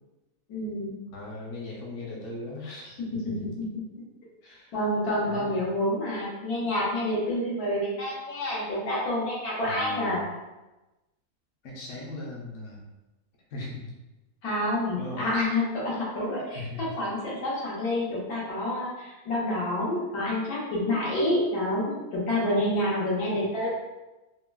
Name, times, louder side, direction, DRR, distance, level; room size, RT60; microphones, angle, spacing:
voice 1, 0.5-1.0 4.7-10.2 14.4-23.7, left 1 dB, 90° left, -6 dB, 1.4 m, -28 dB
voice 2, 1.1-3.5 4.4-4.7 5.2-5.7 9.6-10.2 11.6-12.9 13.5-13.9 15.0-15.3 16.5-16.9, left 2 dB, 60° left, -4 dB, 1.0 m, -39 dB
3.7 x 2.0 x 2.3 m, 1.1 s
omnidirectional pair, 1.5 m